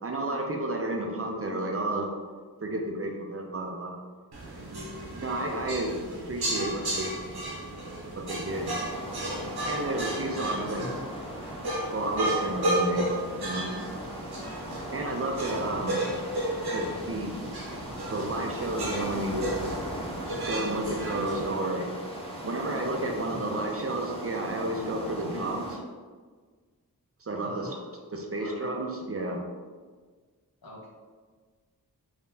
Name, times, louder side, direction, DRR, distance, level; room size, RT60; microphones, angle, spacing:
voice 1, 0.0-2.1 2.6-3.9 5.2-7.1 8.1-8.7 9.7-10.8 11.9-13.1 13.3-13.7 14.9-16.0 16.7-17.3 18.1-19.5 20.5-21.9 22.4-25.7 27.2-27.7 28.1-29.4, right 1 dB, 40° right, 1 dB, 0.5 m, -31 dB
sound 1, 4.3-21.5, right 1 dB, 85° right, 0.8 m, -33 dB
sound 2, 8.4-25.8, equal, 15° left, 0.7 m, -39 dB
voice 2, 10.8-11.1 15.5-16.2 23.2-23.7 25.3-25.6 27.4-27.8 28.4-28.7 30.6-30.9, equal, 70° left, -4 dB, 0.9 m, -42 dB
3.6 x 2.8 x 2.7 m, 1.5 s
wide cardioid pair, 55°, 37 cm